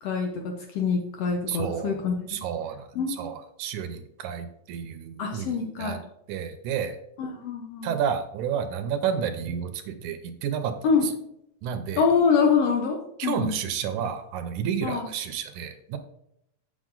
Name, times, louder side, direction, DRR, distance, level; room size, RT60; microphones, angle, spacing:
voice 1, 0.0-2.4 2.9-3.3 5.2-6.0 7.2-7.9 10.8-11.1 12.0-13.6 14.8-15.1, left 5 dB, 70° left, 2 dB, 1.6 m, -25 dB
voice 2, 1.5-2.0 2.3-2.9 3.2-5.5 5.8-6.0 6.3-7.0 7.8-10.7 11.6-12.0 13.2-16.0, right 8 dB, 80° right, 8 dB, 2.0 m, -30 dB
7.4 x 6.9 x 3.8 m, 0.76 s
omnidirectional pair, 3.6 m